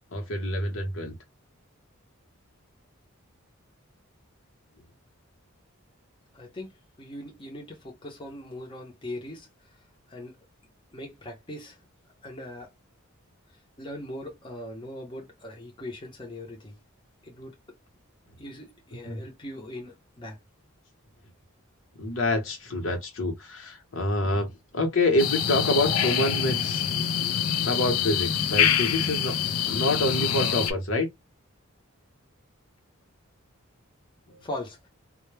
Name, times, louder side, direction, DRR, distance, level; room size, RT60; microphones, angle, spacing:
voice 1, 0.1-1.1 19.1-19.2 21.9-26.8 27.6-29.3 29.7-31.1 34.3-34.4, left 1 dB, 65° left, 0.9 m, -27 dB
voice 2, 6.3-6.7 7.0-9.5 10.1-10.4 10.9-11.8 12.2-12.7 13.8-16.8 17.2-17.5 18.4-20.4 34.4-34.9, left 1 dB, 25° left, 0.6 m, -40 dB
sound 1, 25.2-30.7, left 8 dB, 85° left, 0.4 m, -25 dB
2.2 x 2.1 x 3.1 m
head